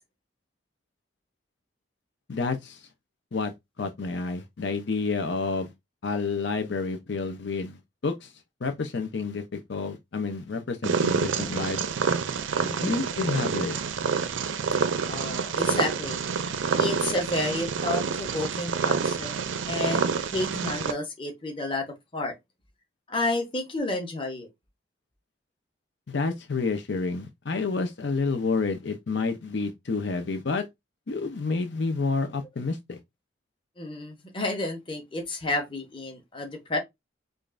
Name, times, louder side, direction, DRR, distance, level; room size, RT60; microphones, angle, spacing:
voice 1, 2.3-2.9 3.3-3.5 3.8-5.7 6.0-8.3 8.6-11.8 12.8-13.8 26.1-30.6 31.1-33.0, left 4 dB, 70° left, 0.6 m, -29 dB
Purr, 10.8-20.9, right 5 dB, 90° right, 0.5 m, -28 dB
voice 2, 12.6-13.0 15.1-16.2 16.8-19.3 19.7-21.8 22.1-22.3 23.1-24.5 33.8-36.8, left 2 dB, 25° left, 1.0 m, -31 dB
5.0 x 2.4 x 2.5 m
head